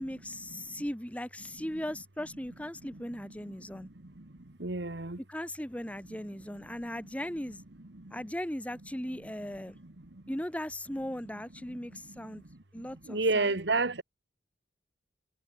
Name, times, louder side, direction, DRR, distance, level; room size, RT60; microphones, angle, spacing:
voice 1, 0.0-3.9 5.3-7.6 8.1-9.8 10.3-12.4 12.7-13.6, equal, 10° left, 1.6 m, -38 dB
voice 2, 4.6-5.2 13.1-14.0, right 3 dB, 80° right, 1.7 m, -29 dB
head